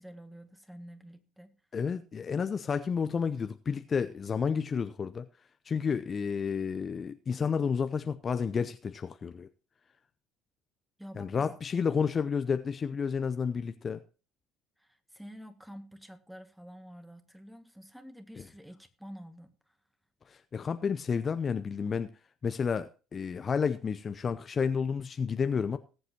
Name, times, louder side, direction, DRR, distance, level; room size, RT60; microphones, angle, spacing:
voice 1, 0.0-1.5 11.0-11.6 14.8-19.8, equal, 5° right, 1.8 m, -49 dB
voice 2, 1.7-5.3 5.7-9.5 11.2-14.0 20.3-22.1 22.4-25.8, left 6 dB, 35° left, 0.6 m, -31 dB
19.5 x 7.9 x 2.9 m
hypercardioid pair, 55°, 0 cm